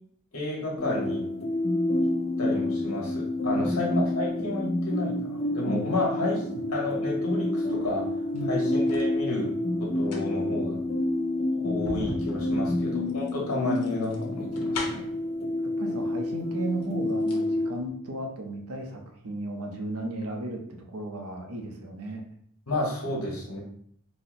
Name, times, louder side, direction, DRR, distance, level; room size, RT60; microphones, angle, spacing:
voice 1, 0.3-1.2 2.4-8.1 8.5-9.5 9.8-10.8 11.5-15.1 22.7-23.6, left 2 dB, 70° left, -3 dB, 1.2 m, -31 dB
sound 1, 0.8-17.7, left 1 dB, 30° left, 0.4 m, -29 dB
sound 2, 8.2-9.1 9.9-15.3 16.2-16.3 16.7-17.5 17.8-17.9, left 2 dB, 85° left, 0.7 m, -40 dB
voice 2, 8.3-8.6 15.6-22.2, right 1 dB, 70° right, 2 dB, 0.6 m, -35 dB
4.1 x 2.0 x 2.6 m, 0.63 s
head